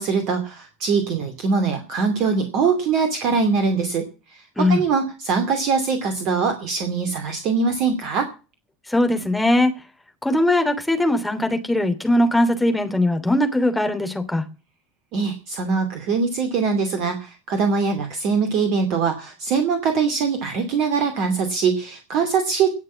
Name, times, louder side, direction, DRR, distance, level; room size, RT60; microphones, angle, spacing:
voice 1, 0.0-8.3 15.1-22.7, right 5 dB, 50° right, 2.6 m, -22 dB
voice 2, 8.9-9.7 10.2-14.4, left 1 dB, 5° left, 3.0 m, -20 dB
18.5 x 6.6 x 7.4 m
figure-of-eight pair, 70°, 0 cm